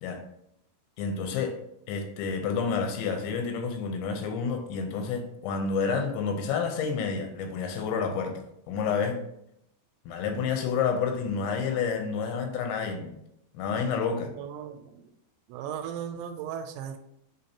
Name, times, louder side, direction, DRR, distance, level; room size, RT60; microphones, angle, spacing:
voice 1, 1.0-1.6 1.9-8.3 8.7-9.2 10.1-13.2 13.5-14.3, left 5 dB, 90° left, 5 dB, 3.2 m, -29 dB
voice 2, 14.4-15.0 15.5-17.0, right 8 dB, 85° right, 7 dB, 2.8 m, -36 dB
9.8 x 3.4 x 2.9 m, 0.77 s
omnidirectional pair, 5.2 m